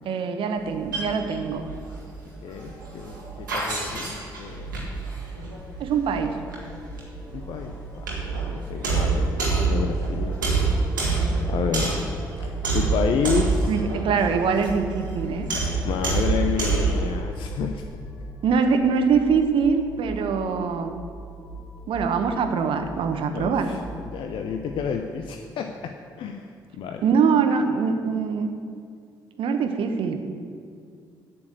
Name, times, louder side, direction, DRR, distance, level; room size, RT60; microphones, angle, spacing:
voice 1, 0.0-1.6 5.8-6.4 13.7-15.5 18.4-21.0 21.9-23.7 27.0-28.5 29.4-30.2, right 5 dB, 55° right, 6 dB, 1.0 m, -23 dB
sound 1, 0.6-17.2, right 3 dB, 85° right, 1.5 m, -27 dB
voice 2, 2.4-4.8 7.3-10.4 11.0-11.9 12.4-13.7 15.8-17.8 23.3-27.0, left 6 dB, 55° left, 4 dB, 0.6 m, -30 dB
sound 2, 5.4-24.9, right 2 dB, 30° left, 1.6 m, -42 dB
8.3 x 7.0 x 8.0 m, 2.2 s
figure-of-eight pair, 45°, 10 cm